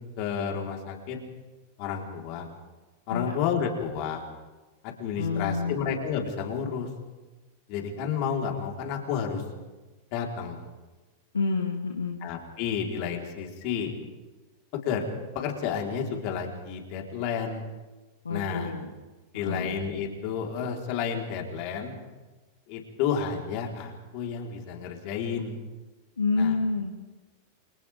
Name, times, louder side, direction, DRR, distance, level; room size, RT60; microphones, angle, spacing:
voice 1, 0.2-1.2 1.8-2.5 3.1-4.2 4.8-6.9 7.7-9.4 10.1-10.6 12.2-13.9 14.8-15.0 15.3-17.6 18.3-18.7 19.3-21.9 22.7-25.6 26.4-26.5, left 7 dB, 45° left, 1 dB, 4.6 m, -31 dB
voice 2, 5.2-5.8 11.3-12.2 18.2-18.9 19.3-19.7 26.2-26.9, left 4 dB, 75° left, 2 dB, 1.8 m, -28 dB
29.0 x 27.5 x 3.8 m, 1.2 s
figure-of-eight pair, 90°, 0 cm